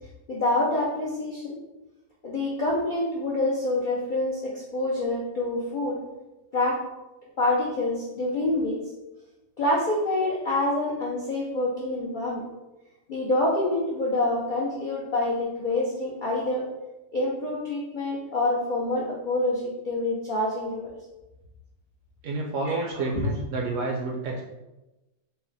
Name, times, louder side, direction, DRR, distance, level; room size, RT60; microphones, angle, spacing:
voice 1, 0.3-1.6 2.2-6.0 6.5-6.8 7.4-8.8 9.6-12.4 13.1-16.7 17.1-20.9 22.7-22.9, left 2 dB, 90° left, -4 dB, 0.4 m, -26 dB
voice 2, 22.2-24.4, right 3 dB, 70° right, -1 dB, 0.7 m, -29 dB
4.0 x 2.0 x 3.9 m, 1.0 s
omnidirectional pair, 1.7 m